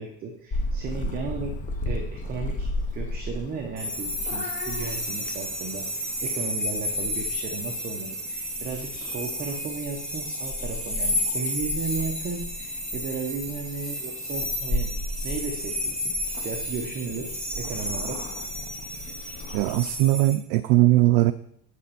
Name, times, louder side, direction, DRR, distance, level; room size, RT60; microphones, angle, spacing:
voice 1, 0.0-1.6 1.8-14.9 15.2-18.2, right 5 dB, 25° right, 3 dB, 0.7 m, -35 dB
Purr / Meow, 0.5-20.0, left 1 dB, 20° left, 0.6 m, -35 dB
sound 1, 3.8-20.3, left 1 dB, ahead, 1.6 m, -32 dB
voice 2, 19.5-21.3, right 16 dB, 70° right, 10 dB, 0.5 m, -20 dB
8.3 x 4.3 x 6.9 m, 0.71 s
cardioid pair, 170°, 36 cm